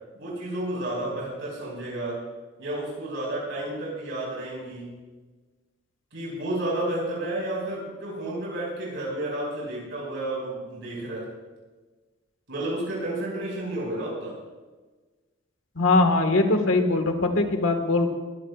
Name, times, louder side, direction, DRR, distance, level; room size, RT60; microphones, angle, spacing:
voice 1, 0.1-2.2 2.6-4.9 6.1-11.3 12.5-14.3, right 1 dB, 65° right, -5 dB, 5.6 m, -31 dB
voice 2, 15.7-18.1, left 2 dB, 75° left, 5 dB, 1.7 m, -21 dB
21.5 x 16.0 x 2.5 m, 1.3 s
head